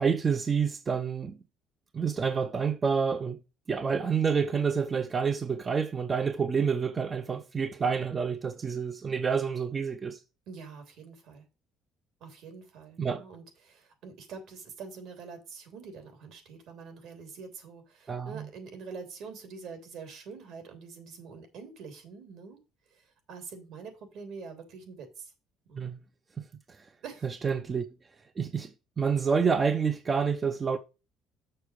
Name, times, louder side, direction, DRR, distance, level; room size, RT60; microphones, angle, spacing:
voice 1, 0.0-1.4 1.9-3.4 3.7-10.2 13.0-13.2 18.1-18.4 25.8-26.0 26.4-26.5 26.8-26.9 27.2-27.9 28.4-30.8, right 6 dB, 25° right, 0.6 m, -28 dB
voice 2, 10.5-11.4 12.2-22.6 22.9-25.3 25.7-25.9 27.0-27.2, right 5 dB, 65° right, 3.3 m, -45 dB
6.9 x 6.7 x 4.7 m
cardioid pair, 125°, 0 cm